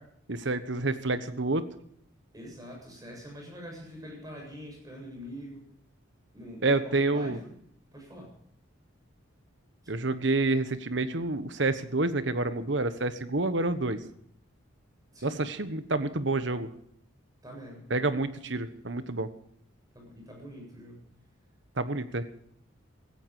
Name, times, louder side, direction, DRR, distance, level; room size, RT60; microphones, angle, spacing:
voice 1, 0.3-1.6 6.6-7.4 9.9-14.0 15.2-16.7 17.9-19.3 21.8-22.3, right 2 dB, 65° right, 12 dB, 1.2 m, -28 dB
voice 2, 2.3-5.7 6.3-7.6 7.9-8.3 15.1-15.5 17.4-17.9 18.4-18.6 19.9-21.1, equal, 20° right, 0 dB, 7.8 m, -45 dB
17.0 x 15.0 x 4.8 m, 0.69 s
head